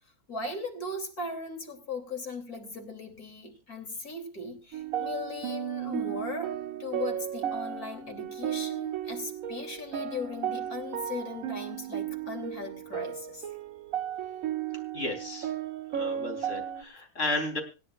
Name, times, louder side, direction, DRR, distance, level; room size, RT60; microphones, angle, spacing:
voice 1, 0.3-13.5, left 3 dB, 75° left, 4 dB, 3.6 m, -38 dB
sound 1, 4.7-16.8, right 10 dB, 65° right, 1.3 m, -34 dB
voice 2, 14.9-15.5 15.9-17.6, left 2 dB, 50° left, 3 dB, 4.2 m, -33 dB
27.0 x 9.8 x 2.5 m, 0.30 s
omnidirectional pair, 1.6 m